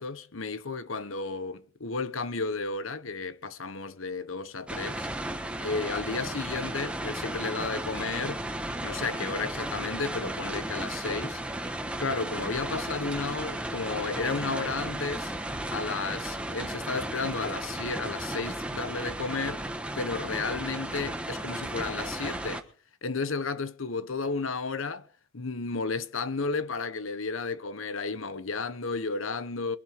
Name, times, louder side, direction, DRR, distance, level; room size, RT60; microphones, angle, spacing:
voice 1, 0.0-5.1 5.6-8.4 8.8-11.4 12.0-15.3 15.7-19.7 19.9-22.6 23.0-25.1 25.3-29.8, left 4 dB, 80° left, 1.1 m, -33 dB
sound 1, 4.7-22.6, right 1 dB, 5° right, 1.3 m, -34 dB
23.0 x 12.0 x 3.7 m
head